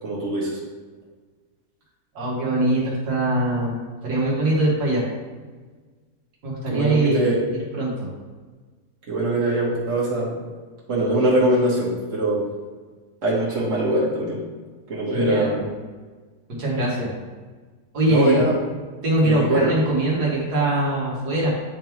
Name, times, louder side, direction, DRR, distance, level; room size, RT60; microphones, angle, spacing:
voice 1, 0.0-0.5 6.7-7.4 9.1-10.4 10.9-12.4 13.2-14.4 14.9-15.5 18.1-18.5 19.2-19.7, right 1 dB, 55° right, -6 dB, 1.9 m, -22 dB
voice 2, 2.2-5.0 6.4-8.1 15.1-15.7 16.6-17.1 17.9-18.4 19.0-21.5, right 1 dB, 90° right, -5 dB, 2.0 m, -22 dB
9.3 x 3.5 x 3.1 m, 1.4 s
omnidirectional pair, 1.6 m